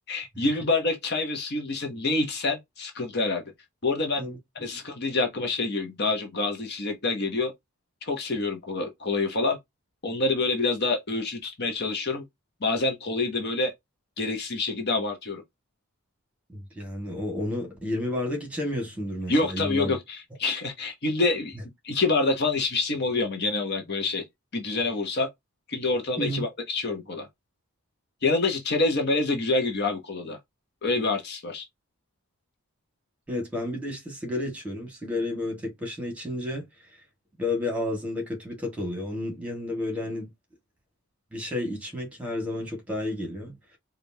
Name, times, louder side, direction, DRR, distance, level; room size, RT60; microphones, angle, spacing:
voice 1, 0.1-3.4 3.8-4.2 4.6-7.5 8.0-9.6 10.0-12.2 12.6-13.7 14.2-15.4 19.3-21.6 21.8-24.2 24.5-25.3 25.7-27.3 28.2-30.4 30.8-31.6, left 3 dB, 50° left, 0.9 m, -27 dB
voice 2, 16.5-20.0 26.2-26.4 33.3-36.7 37.4-40.3 41.3-43.6, left 1 dB, 5° right, 1.8 m, -31 dB
5.0 x 2.5 x 2.8 m
head